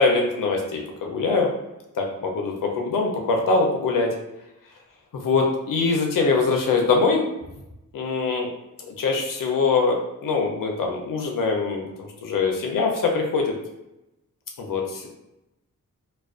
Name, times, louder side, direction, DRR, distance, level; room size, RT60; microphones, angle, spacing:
voice 1, 0.0-1.5 2.0-4.1 5.2-7.2 7.9-8.5 8.9-13.5 14.6-15.1, left 4 dB, 75° left, 1 dB, 0.5 m, -23 dB
2.4 x 2.2 x 2.3 m, 0.93 s
wide cardioid pair, 105°, 33 cm